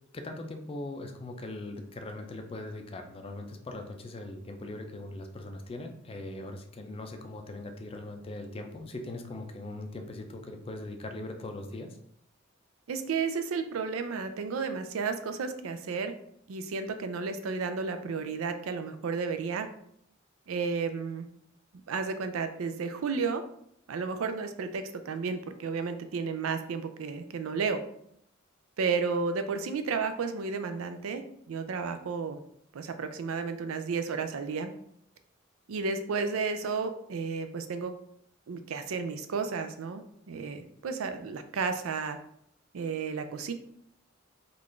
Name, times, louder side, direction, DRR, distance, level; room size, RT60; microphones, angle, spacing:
voice 1, 0.1-12.0, left 2 dB, 30° left, 4 dB, 0.4 m, -40 dB
voice 2, 12.9-16.1 16.5-19.7 20.5-21.3 21.9-23.4 23.9-27.8 28.8-32.4 32.7-34.7 35.7-37.9 38.5-42.2 42.7-43.5, right 5 dB, 80° right, 8 dB, 0.4 m, -32 dB
3.8 x 2.4 x 3.2 m, 0.70 s
head